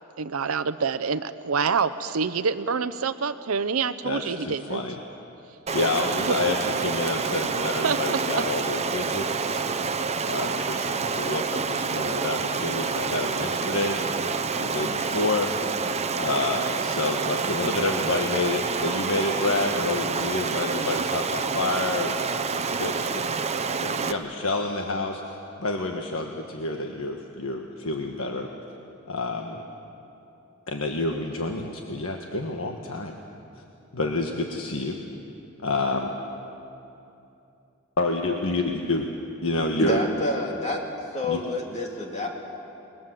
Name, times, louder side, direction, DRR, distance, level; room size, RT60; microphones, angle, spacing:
voice 1, 0.2-4.8 6.2-6.4 7.8-8.4, right 5 dB, 85° right, 12 dB, 0.7 m, -27 dB
voice 2, 4.0-5.0 5.7-9.7 10.2-14.0 14.6-15.5 16.2-23.3 23.8-25.2 25.6-28.5 29.1-29.6 30.7-33.2 33.9-35.0 35.6-36.1 38.0-39.1 39.4-40.0 41.3-41.4, left 2 dB, 70° left, 2 dB, 1.5 m, -28 dB
Stream, 5.7-24.1, right 5 dB, 30° right, 0.9 m, -28 dB
voice 3, 39.8-40.8 41.1-42.5, left 1 dB, 35° left, 0 dB, 2.5 m, -28 dB
28.5 x 21.0 x 7.6 m, 2.7 s
head